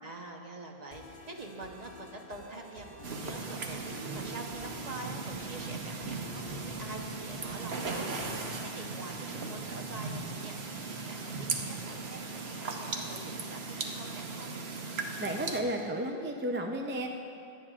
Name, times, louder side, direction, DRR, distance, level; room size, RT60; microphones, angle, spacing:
voice 1, 0.0-14.5, right 2 dB, 45° right, 1 dB, 1.1 m, -46 dB
sound 1, 0.9-8.3, left 1 dB, 60° left, 1.6 m, -50 dB
sound 2, 3.0-15.6, right 3 dB, 90° right, 1.2 m, -37 dB
voice 2, 15.2-17.2, right 1 dB, 15° right, 2 dB, 0.4 m, -33 dB
25.0 x 8.7 x 2.5 m, 2.6 s
omnidirectional pair, 1.0 m